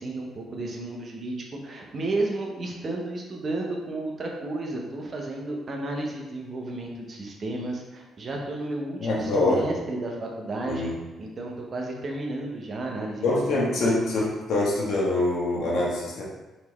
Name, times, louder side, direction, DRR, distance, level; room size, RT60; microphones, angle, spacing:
voice 1, 0.0-10.9 11.2-13.4 13.8-14.0, right 2 dB, 40° right, 0 dB, 0.8 m, -32 dB
voice 2, 9.0-9.6 10.7-11.0 13.2-16.2, left 2 dB, 70° left, -4 dB, 1.3 m, -24 dB
4.1 x 3.4 x 3.1 m, 1.1 s
cardioid pair, 90°, 0 cm